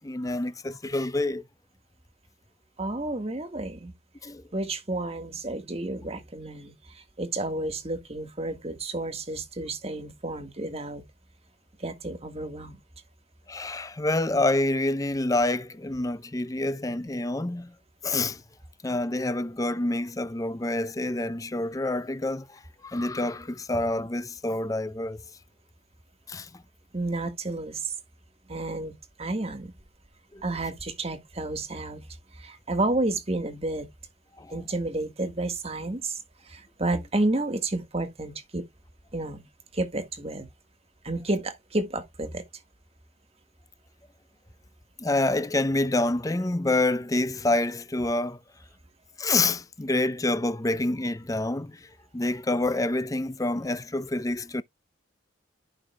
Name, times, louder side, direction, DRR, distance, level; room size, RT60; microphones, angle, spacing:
voice 1, 0.0-1.4 4.2-4.4 13.5-17.7 18.0-18.4 18.8-25.2 26.3-26.6 30.3-30.4 34.4-34.6 45.0-48.4 49.2-54.6, left 2 dB, 20° left, 0.6 m, -27 dB
voice 2, 2.8-3.9 4.5-11.0 11.8-12.8 26.9-27.9 28.5-29.7 30.4-32.1 32.3-33.9 34.5-38.7 39.1-39.4 39.7-40.5 41.0-42.4, right 2 dB, 35° right, 1.7 m, -31 dB
14.5 x 5.6 x 2.3 m
head